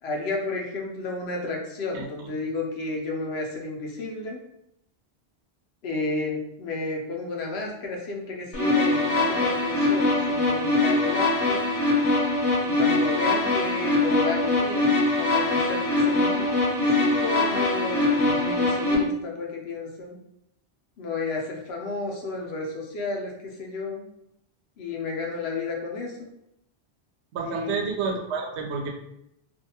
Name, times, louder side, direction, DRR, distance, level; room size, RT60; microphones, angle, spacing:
voice 1, 0.0-4.4 5.8-11.7 12.6-20.2 21.0-24.0 24.8-26.3 27.4-27.8, left 3 dB, 70° left, 0 dB, 0.9 m, -32 dB
sound 1, 8.5-18.9, left 2 dB, 35° left, 0.7 m, -23 dB
voice 2, 27.3-28.9, right 5 dB, 80° right, 0 dB, 0.9 m, -30 dB
2.6 x 2.3 x 2.7 m, 0.80 s
omnidirectional pair, 1.1 m